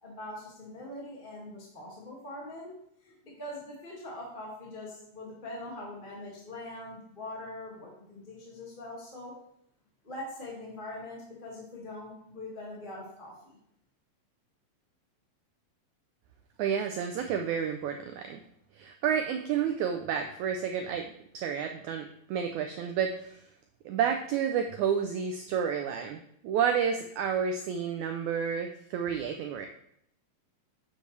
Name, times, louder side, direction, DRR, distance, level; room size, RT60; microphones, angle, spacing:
voice 1, 0.0-2.7 3.0-9.3 10.0-13.6, left 1 dB, 20° left, -5 dB, 1.5 m, -42 dB
voice 2, 16.6-18.4 18.7-23.4 23.8-29.7, right 7 dB, 90° right, 5 dB, 1.6 m, -30 dB
9.6 x 7.8 x 3.3 m, 0.72 s
omnidirectional pair, 4.1 m